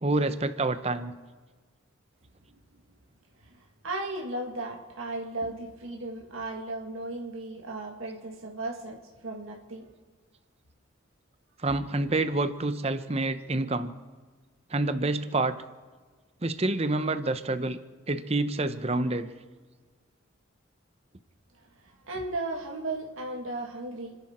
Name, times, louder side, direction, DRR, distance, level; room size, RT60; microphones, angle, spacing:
voice 1, 0.0-1.1 11.6-13.9 14.7-15.5 16.4-17.8 18.1-19.3, right 2 dB, 30° right, 11 dB, 0.8 m, -27 dB
voice 2, 3.4-9.9 21.8-24.2, right 2 dB, 90° right, 0 dB, 2.0 m, -36 dB
30.0 x 11.0 x 4.4 m, 1.4 s
head